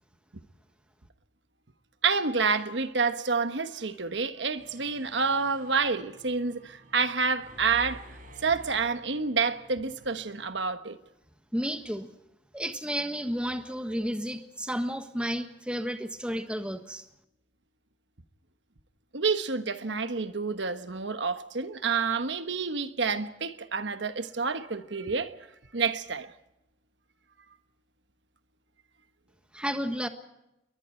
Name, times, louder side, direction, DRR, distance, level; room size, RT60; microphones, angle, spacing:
voice 1, 2.0-8.0 8.4-11.0 19.1-25.3 25.7-26.3, right 4 dB, 75° right, 1.3 m, -28 dB
Mechanisms, 4.6-10.5, equal, 45° right, 6.4 m, -51 dB
voice 2, 11.5-12.1 12.5-17.1 29.5-30.1, equal, 5° right, 1.4 m, -32 dB
29.0 x 22.5 x 4.4 m
head